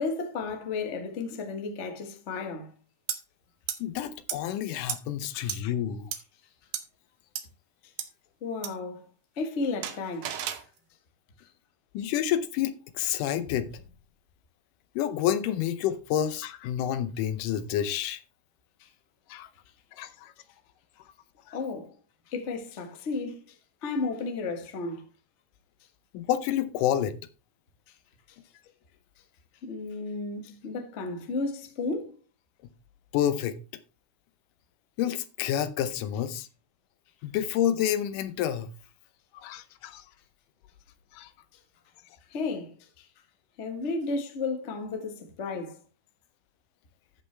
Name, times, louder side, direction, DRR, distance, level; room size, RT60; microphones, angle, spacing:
voice 1, 0.0-2.7 5.3-5.5 8.4-9.1 9.4-10.5 18.8-18.9 20.0-20.1 21.5-22.0 22.3-23.4 23.8-25.0 29.6-32.2 42.3-43.1 43.6-45.8, left 3 dB, 60° left, 0.7 m, -33 dB
sound 1, 3.1-3.2 3.7-3.8 4.3-4.4 4.9-5.0 5.5-5.6 6.1-6.2 6.7-6.8 7.3-7.4 8.0-8.1 8.6-8.7 9.8-10.6, right 10 dB, 70° right, 2.0 m, -32 dB
voice 2, 3.8-6.1 11.9-13.8 15.0-18.2 19.3-19.5 20.0-20.3 21.5-21.6 26.1-27.2 33.1-33.6 35.0-36.5 37.2-38.7 39.4-40.0 41.1-41.3, left 10 dB, 90° left, 2.3 m, -29 dB
14.0 x 5.6 x 3.3 m
omnidirectional pair, 3.6 m